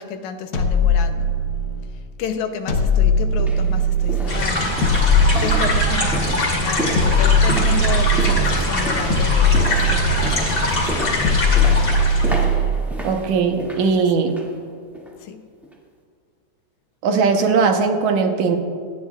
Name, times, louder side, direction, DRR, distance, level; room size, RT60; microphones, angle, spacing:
voice 1, 0.0-1.3 1.9-4.8 5.4-11.4 13.8-14.0 15.2-15.5, left 6 dB, 75° left, 6 dB, 2.0 m, -31 dB
sound 1, 0.5-1.9 2.7-4.3 4.8-6.2 7.0-8.6 9.1-10.5 11.2-12.9, left 1 dB, 60° left, 1.4 m, -19 dB
sound 2, 2.6-2.7 3.3-14.6 14.9-15.2 15.6-15.7, right 1 dB, ahead, 1.3 m, -31 dB
sound 3, 4.3-12.4, left 1 dB, 30° left, 2.9 m, -22 dB
voice 2, 13.0-14.3 17.0-18.6, right 5 dB, 75° right, 4 dB, 2.3 m, -19 dB
27.0 x 10.0 x 2.4 m, 2.1 s
omnidirectional pair, 3.6 m